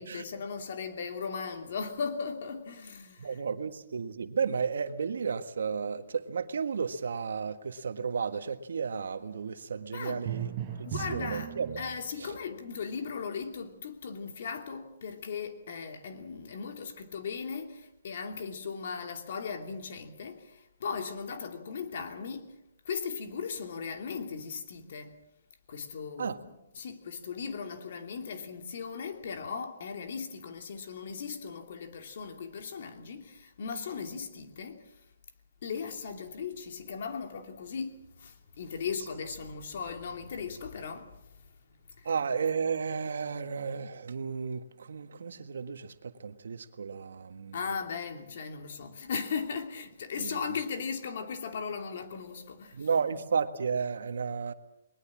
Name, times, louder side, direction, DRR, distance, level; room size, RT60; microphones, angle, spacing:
voice 1, 0.0-3.4 9.9-10.3 10.8-11.5 11.8-25.1 25.7-26.4 26.7-34.8 35.6-41.2 42.0-42.1 47.5-52.9, left 5 dB, 55° left, 2.8 m, -37 dB
voice 2, 3.2-11.8 12.2-12.4 26.2-26.4 42.0-47.7 50.2-50.6 52.7-54.5, right 6 dB, 80° right, 1.6 m, -33 dB
Drum, 10.2-12.3, right 11 dB, 30° right, 5.3 m, -37 dB
21.0 x 20.0 x 7.5 m
hypercardioid pair, 160°, 0 cm